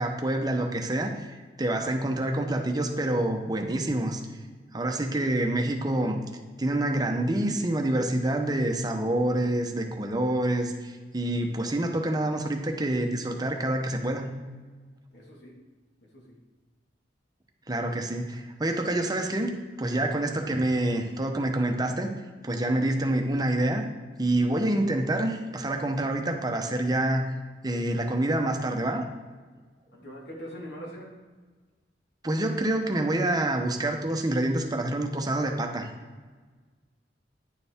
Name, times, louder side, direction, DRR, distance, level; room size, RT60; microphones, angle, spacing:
voice 1, 0.0-4.2 4.7-6.2 6.6-14.3 17.7-19.5 19.8-22.1 22.4-23.8 24.2-27.2 27.6-29.0 32.2-35.9, right 1 dB, 20° right, 4 dB, 0.8 m, -27 dB
voice 2, 15.1-15.6 16.1-16.4 29.9-31.2, equal, 65° left, -1 dB, 2.0 m, -42 dB
10.0 x 6.7 x 3.6 m, 1.4 s
head